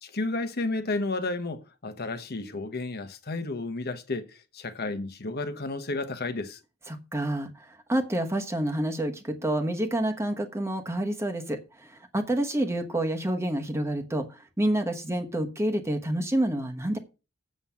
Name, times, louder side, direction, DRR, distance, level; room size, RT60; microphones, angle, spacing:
voice 1, 0.0-6.6, left 2 dB, 45° left, 1.1 m, -32 dB
voice 2, 6.9-17.0, right 1 dB, 15° right, 1.1 m, -28 dB
7.9 x 7.4 x 5.7 m
head